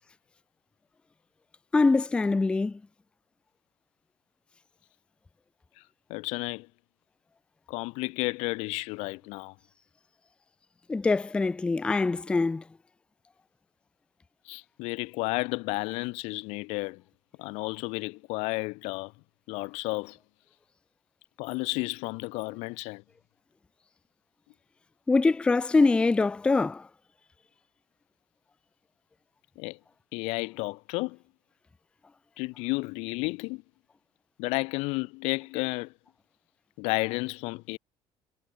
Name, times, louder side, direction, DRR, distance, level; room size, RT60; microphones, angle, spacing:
voice 1, 1.7-2.8 10.9-12.6 25.1-26.9, left 3 dB, 10° left, 0.4 m, -24 dB
voice 2, 6.1-6.7 7.7-9.5 14.4-17.0 17.4-19.1 19.5-20.2 21.4-23.0 29.6-29.8 30.1-31.2 32.4-33.6 34.4-35.9 36.8-37.8, left 26 dB, 90° left, 1.1 m, -32 dB
cardioid pair, 155°, 10 cm